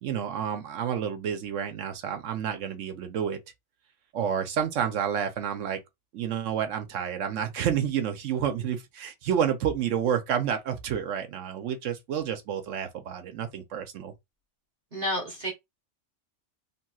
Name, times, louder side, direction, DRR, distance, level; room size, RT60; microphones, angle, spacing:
voice 1, 0.0-3.4 4.1-5.8 6.1-14.1, right 8 dB, 75° right, 1.0 m, -29 dB
voice 2, 14.9-15.5, equal, 45° right, 0.9 m, -30 dB
3.0 x 2.9 x 2.3 m
omnidirectional pair, 1.3 m